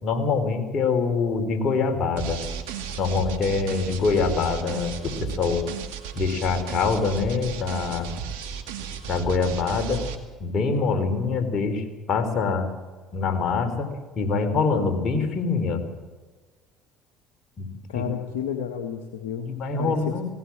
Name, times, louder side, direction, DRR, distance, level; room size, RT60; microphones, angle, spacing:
voice 1, 0.0-2.4 3.0-5.7 6.1-8.1 9.1-10.0 10.4-12.7 13.1-13.9 14.2-15.8 17.6-17.7 18.0-18.1 19.5-20.2, left 4 dB, 50° left, 5 dB, 4.3 m, -24 dB
sound 1, 2.2-10.2, right 7 dB, 80° right, 2.2 m, -34 dB
voice 2, 17.9-19.5 19.8-20.2, left 8 dB, 80° left, 4 dB, 1.7 m, -31 dB
19.0 x 18.5 x 7.4 m, 1.4 s
hypercardioid pair, 60°, 0 cm